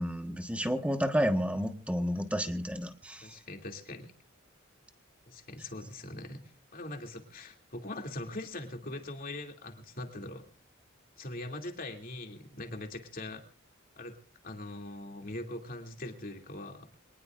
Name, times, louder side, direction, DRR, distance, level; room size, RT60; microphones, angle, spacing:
voice 1, 0.0-3.3, equal, 5° right, 7 dB, 1.4 m, -31 dB
voice 2, 3.2-4.1 5.3-6.4 6.7-10.4 11.2-13.4 14.0-14.2 14.4-16.9, left 1 dB, 45° left, 3 dB, 2.7 m, -41 dB
24.0 x 19.5 x 2.5 m, 0.35 s
head